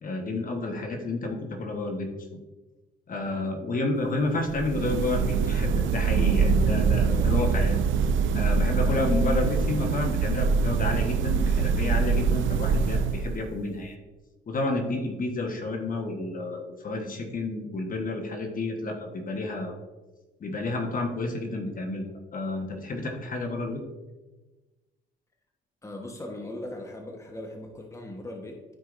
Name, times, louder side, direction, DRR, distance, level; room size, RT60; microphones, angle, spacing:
voice 1, 0.0-2.1 3.1-7.8 8.3-14.0 14.5-19.7 20.4-23.8, left 2 dB, 45° left, 3 dB, 1.2 m, -30 dB
sound 1, 4.4-13.6, right 5 dB, 75° right, 0.6 m, -24 dB
voice 2, 7.0-7.5 8.8-9.0 23.6-23.7 25.8-28.6, left 1 dB, 15° left, 2 dB, 1.1 m, -40 dB
13.0 x 4.7 x 2.6 m, 1.2 s
cardioid pair, 90°, 20 cm